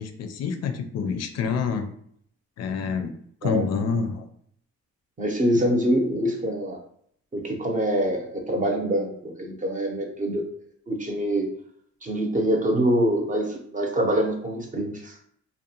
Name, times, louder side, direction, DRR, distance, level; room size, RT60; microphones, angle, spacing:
voice 1, 0.0-1.9 2.6-4.3, left 5 dB, 60° left, 7 dB, 0.4 m, -27 dB
voice 2, 5.2-6.8 7.3-10.4 10.9-11.5 12.0-15.2, equal, 25° right, 2 dB, 0.6 m, -25 dB
2.5 x 2.1 x 2.8 m, 0.66 s
cardioid pair, 90°, 30 cm